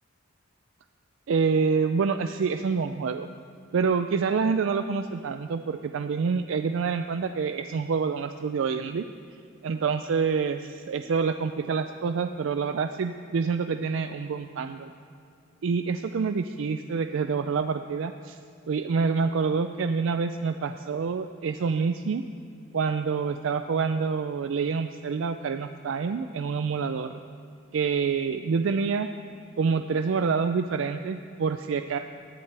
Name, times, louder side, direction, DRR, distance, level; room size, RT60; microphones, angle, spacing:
voice 1, 1.3-3.3 3.7-9.1 9.6-14.9 15.6-18.4 18.7-22.2 22.7-27.2 27.7-29.1 29.6-32.0, right 5 dB, 65° right, 8 dB, 0.4 m, -27 dB
19.0 x 10.5 x 3.3 m, 2.4 s
head